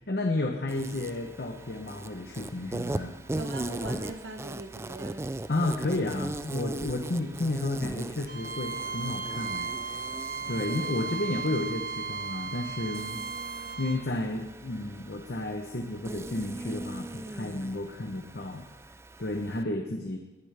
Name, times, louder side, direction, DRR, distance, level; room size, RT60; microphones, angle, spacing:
voice 1, 0.0-3.1 5.5-10.1 10.5-13.2 13.8-18.7 19.2-20.2, left 2 dB, 60° left, 3 dB, 1.0 m, -32 dB
Insect, 0.7-19.6, right 2 dB, 15° right, 0.4 m, -39 dB
voice 2, 3.3-5.3, right 1 dB, 85° right, 3 dB, 1.8 m, -40 dB
Bowed string instrument, 8.3-14.0, right 5 dB, 50° right, 0.9 m, -36 dB
19.5 x 10.5 x 3.4 m, 1.1 s
head